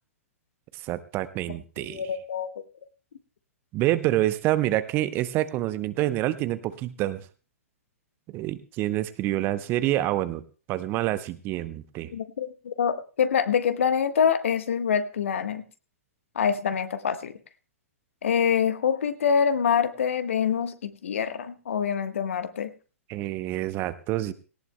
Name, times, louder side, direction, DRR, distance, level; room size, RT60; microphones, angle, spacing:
voice 1, 0.8-2.0 3.7-7.2 8.3-10.4 10.7-12.1 23.1-24.3, right 15 dB, 25° right, 14 dB, 0.8 m, -27 dB
voice 2, 1.8-2.5 12.1-15.6 16.3-17.3 18.2-22.7, left 7 dB, 60° left, 10 dB, 1.4 m, -25 dB
18.0 x 17.5 x 2.3 m, 0.36 s
figure-of-eight pair, 110°, 8 cm